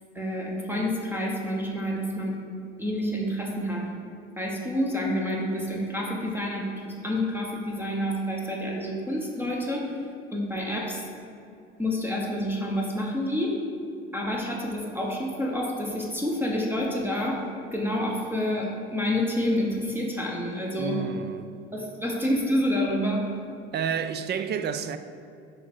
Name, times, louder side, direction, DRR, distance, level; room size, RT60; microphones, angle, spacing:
voice 1, 0.1-2.3 2.8-3.8 4.4-9.9 10.3-11.0 11.8-13.6 14.1-17.4 17.7-21.0 21.7-23.3, left 1 dB, 5° right, 1.2 m, -28 dB
voice 2, 20.8-21.5 23.7-25.0, right 7 dB, 35° right, 0.4 m, -30 dB
7.1 x 4.8 x 4.5 m
hypercardioid pair, 70°, 31 cm